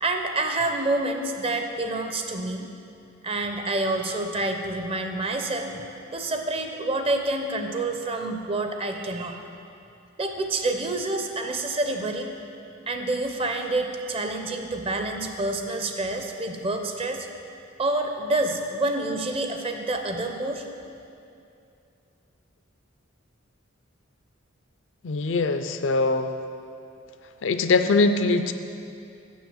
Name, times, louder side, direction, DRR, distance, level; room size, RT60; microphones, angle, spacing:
voice 1, 0.0-2.7 3.2-9.4 10.2-12.3 12.9-17.3 17.8-20.7, right 2 dB, 25° right, 5 dB, 0.5 m, -28 dB
voice 2, 25.0-26.3 27.4-28.5, left 3 dB, 60° left, 9 dB, 0.4 m, -22 dB
7.3 x 6.2 x 7.0 m, 2.6 s
head